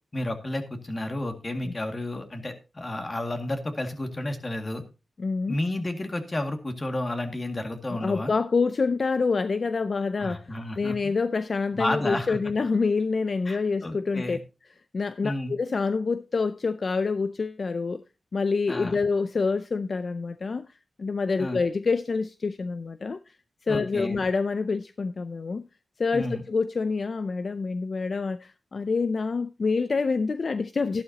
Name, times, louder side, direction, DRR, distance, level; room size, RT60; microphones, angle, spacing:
voice 1, 0.1-4.8 5.5-8.3 10.2-11.1 11.7-12.4 13.5-14.4 15.2-15.5 18.7-19.0 21.4-21.6 23.7-24.2 26.1-26.4, left 1 dB, 30° left, 2.1 m, -31 dB
voice 2, 5.2-5.6 7.9-14.4 14.9-18.0 18.3-23.4 23.6-25.7 26.0-31.0, left 4 dB, 55° left, 0.5 m, -27 dB
12.5 x 11.5 x 2.8 m
cardioid pair, 70°, 0 cm